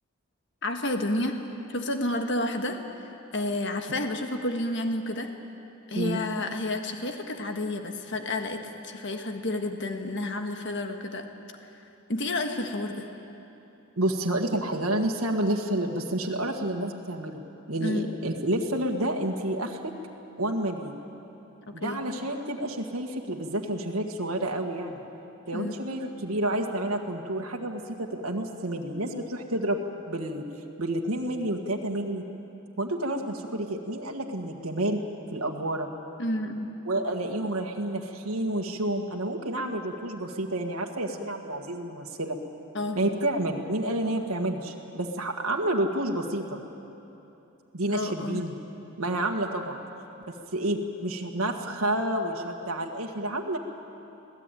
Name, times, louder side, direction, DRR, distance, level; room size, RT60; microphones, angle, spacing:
voice 1, 0.6-1.4 1.7-2.8 3.3-5.3 5.9-11.3 12.1-13.1 17.8-18.1 21.8-22.0 25.5-25.7 36.2-36.7 42.7-43.0 47.9-48.4, left 1 dB, 55° left, 5 dB, 1.6 m, -30 dB
voice 2, 14.0-17.4 17.7-19.8 20.4-20.9 21.7-25.0 25.5-29.8 30.1-30.4 30.8-32.2 32.8-35.0 35.3-35.9 36.9-42.4 42.9-46.6 47.7-48.5 49.0-49.8 50.3-53.6, right 1 dB, 85° right, 1 dB, 1.7 m, -29 dB
25.0 x 17.0 x 9.1 m, 2.9 s
head